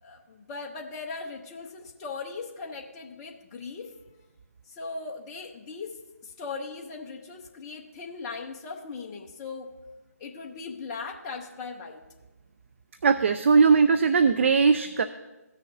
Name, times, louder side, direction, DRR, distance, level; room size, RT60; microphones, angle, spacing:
voice 1, 0.0-3.9 4.7-6.0 6.2-9.7 10.2-12.0, left 4 dB, 20° left, -1 dB, 0.7 m, -39 dB
voice 2, 13.0-15.1, right 5 dB, 45° right, 11 dB, 0.4 m, -19 dB
17.0 x 6.6 x 2.7 m, 1.1 s
figure-of-eight pair, 155°, 9 cm